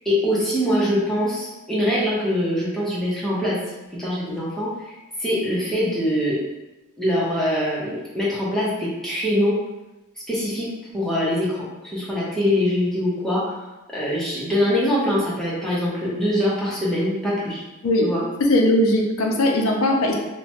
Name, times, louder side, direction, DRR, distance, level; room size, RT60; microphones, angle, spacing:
voice 1, 0.0-3.6 3.9-6.4 7.0-9.6 10.3-10.7 10.9-11.6 11.8-13.5 13.9-17.6 18.0-18.2, equal, ahead, -8 dB, 0.7 m, -23 dB
voice 2, 18.4-20.1, left 1 dB, 65° left, 1 dB, 0.4 m, -19 dB
2.8 x 2.1 x 2.8 m, 1.1 s
head